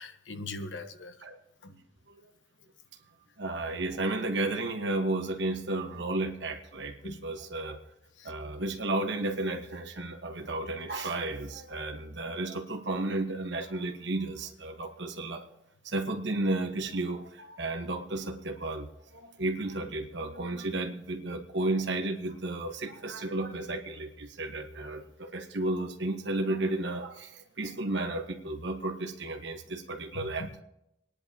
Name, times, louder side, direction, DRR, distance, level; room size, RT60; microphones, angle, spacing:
voice 1, 0.0-1.2 1.6-1.7 7.0-7.2 8.2-8.3 30.1-30.6, left 2 dB, 80° left, 8 dB, 1.0 m, -41 dB
voice 2, 3.4-7.8 8.2-15.5 15.8-30.5, right 2 dB, 70° right, 5 dB, 1.3 m, -33 dB
27.0 x 10.0 x 2.9 m, 0.84 s
head